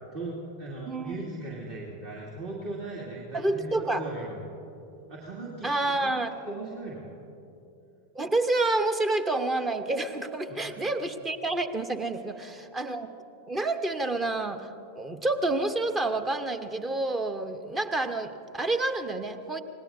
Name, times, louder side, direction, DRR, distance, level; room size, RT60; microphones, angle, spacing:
voice 1, 0.1-4.5 5.1-5.7 6.0-7.2 10.5-10.9 12.3-12.5, right 2 dB, 45° right, -3 dB, 2.4 m, -38 dB
voice 2, 3.3-4.0 5.6-6.3 8.1-13.1 13.5-19.6, right 2 dB, 15° right, 10 dB, 0.9 m, -28 dB
26.5 x 19.0 x 2.7 m, 2.9 s
figure-of-eight pair, 90°, 0 cm